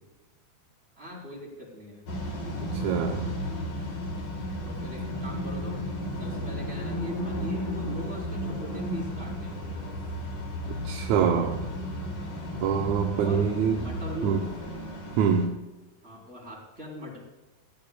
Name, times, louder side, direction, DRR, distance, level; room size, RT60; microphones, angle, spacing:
voice 1, 1.0-2.1 4.6-5.9 6.2-9.9 13.1-13.5 13.7-14.5 16.0-17.2, equal, 20° right, 4.4 m, -40 dB
sound 1, 2.1-15.5, equal, 60° left, 4.2 m, -34 dB
voice 2, 2.6-3.3 10.9-11.7 12.6-13.8 14.2-14.4 15.2-15.6, right 7 dB, 75° right, 2.2 m, -25 dB
19.0 x 16.0 x 2.4 m
omnidirectional pair, 3.4 m